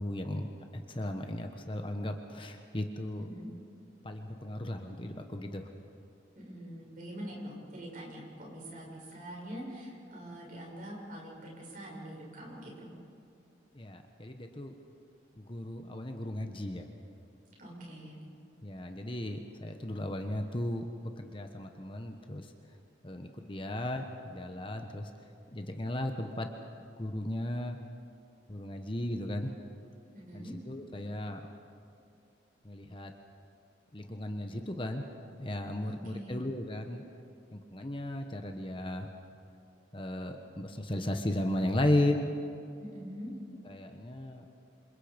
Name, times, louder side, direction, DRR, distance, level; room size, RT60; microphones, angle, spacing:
voice 1, 0.0-3.3 4.0-5.7 13.7-14.7 15.4-16.9 18.6-22.5 23.0-25.1 25.5-27.8 28.5-29.5 30.3-31.4 32.6-33.1 33.9-35.0 35.4-37.0 37.5-39.1 39.9-42.4 43.6-44.5, left 1 dB, 30° left, 5 dB, 1.3 m, -35 dB
voice 2, 6.4-12.9 17.6-18.2 30.1-30.5 35.9-36.3 42.8-43.3, equal, 45° right, -2 dB, 7.1 m, -44 dB
27.5 x 27.0 x 5.3 m, 2.6 s
head